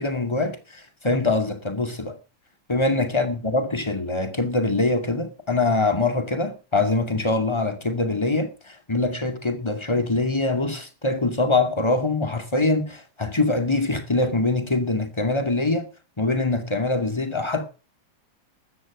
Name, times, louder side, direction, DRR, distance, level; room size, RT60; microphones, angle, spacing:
voice 1, 0.0-2.2 2.7-15.8 16.2-17.6, left 2 dB, 15° left, 2.3 m, -23 dB
13.0 x 9.9 x 6.0 m
omnidirectional pair, 2.1 m